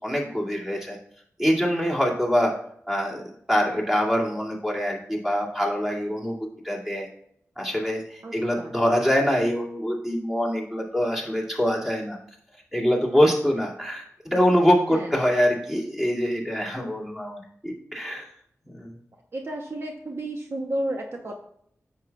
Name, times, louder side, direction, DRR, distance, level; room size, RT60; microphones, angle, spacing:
voice 1, 0.0-1.0 1.4-2.5 2.9-6.3 6.6-7.1 7.6-12.2 12.7-18.2 18.7-18.9, equal, 10° right, -3 dB, 2.4 m, -24 dB
voice 2, 8.2-8.7 14.9-15.1 19.3-21.4, right 1 dB, 50° right, 2 dB, 0.9 m, -32 dB
9.6 x 7.2 x 2.3 m, 0.68 s
wide cardioid pair, 70°, 6 cm